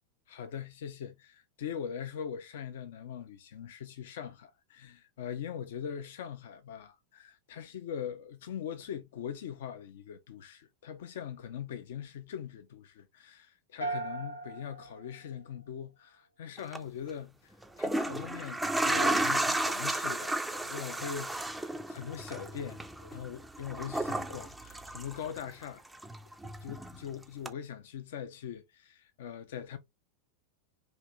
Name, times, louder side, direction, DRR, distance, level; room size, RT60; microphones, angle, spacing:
voice 1, 0.3-25.8 26.6-29.8, left 8 dB, 55° left, 0.5 m, -41 dB
sound 1, 13.8-16.1, right 2 dB, 80° left, 0.8 m, -39 dB
sound 2, 16.6-16.8 17.6-25.6 25.9-27.0 27.5-27.6, right 2 dB, 5° right, 0.4 m, -33 dB
3.3 x 2.6 x 3.0 m
figure-of-eight pair, 90°, 0 cm